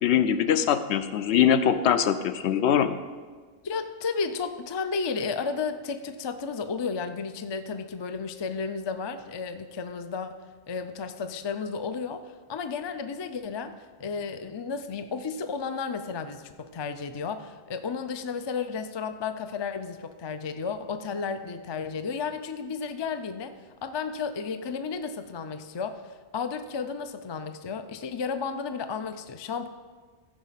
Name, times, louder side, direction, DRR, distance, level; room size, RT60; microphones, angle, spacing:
voice 1, 0.0-3.0, left 9 dB, 75° left, 11 dB, 0.8 m, -22 dB
voice 2, 3.6-10.4 10.7-12.2 12.5-13.7 14.0-23.5 23.8-29.7, left 5 dB, 40° left, 9 dB, 0.3 m, -33 dB
14.0 x 5.2 x 5.7 m, 1.5 s
omnidirectional pair, 1.2 m